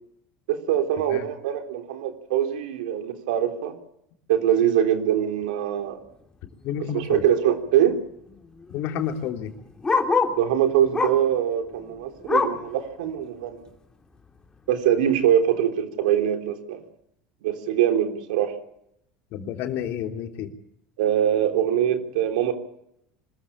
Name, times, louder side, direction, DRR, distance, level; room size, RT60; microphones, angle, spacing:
voice 1, 0.5-3.8 4.3-6.0 6.9-8.0 10.3-13.6 14.7-16.8 17.4-18.6 21.0-22.5, right 10 dB, 85° right, 6 dB, 3.5 m, -23 dB
voice 2, 6.6-7.2 8.7-9.5 19.3-20.5, left 9 dB, 65° left, 4 dB, 3.4 m, -30 dB
Bark, 6.7-7.0 7.3-7.4 7.6-10.5 10.9-11.3 11.7-12.7 13.2-13.3 13.7-13.8 14.4-14.5, left 4 dB, 20° left, 3.1 m, -26 dB
25.0 x 14.0 x 8.7 m, 0.75 s
supercardioid pair, 95°, 4 cm